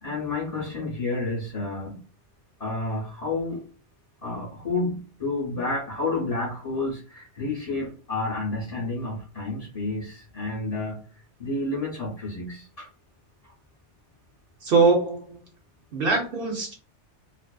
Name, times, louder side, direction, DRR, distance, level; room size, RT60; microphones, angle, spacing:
voice 1, 0.0-2.0 2.6-3.6 4.2-11.0 11.4-12.9 13.4-13.5, left 2 dB, 40° left, -5 dB, 0.7 m, -30 dB
voice 2, 14.6-15.4 15.9-16.7, right 4 dB, 60° right, 0 dB, 0.7 m, -22 dB
2.4 x 2.4 x 2.2 m, 0.38 s
omnidirectional pair, 1.2 m